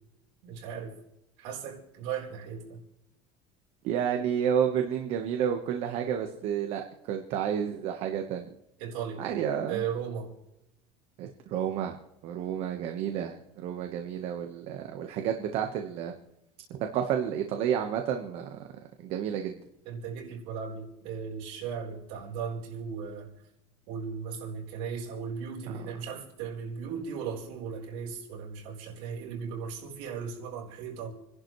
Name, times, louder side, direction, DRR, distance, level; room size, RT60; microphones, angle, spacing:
voice 1, 0.4-1.0 1.4-2.8 8.8-9.3 9.7-10.3 19.8-23.3 23.9-31.1, right 6 dB, 65° right, 4.1 m, -37 dB
voice 2, 3.8-8.5 9.2-9.8 11.2-12.0 12.2-16.1 16.7-18.6 19.0-19.6, right 8 dB, 50° right, 1.2 m, -30 dB
29.0 x 11.5 x 3.2 m
cardioid pair, 170°, 13 cm